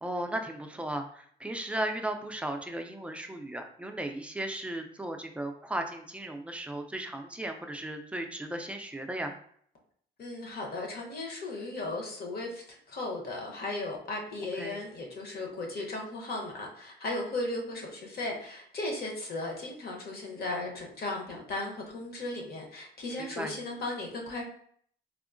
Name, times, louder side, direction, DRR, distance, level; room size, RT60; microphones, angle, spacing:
voice 1, 0.0-9.3 14.6-14.8 23.2-23.5, right 1 dB, 5° right, 4 dB, 0.4 m, -36 dB
voice 2, 10.2-24.4, left 2 dB, 50° left, 0 dB, 0.9 m, -36 dB
3.6 x 2.0 x 2.5 m, 0.62 s
cardioid pair, 90°, 20 cm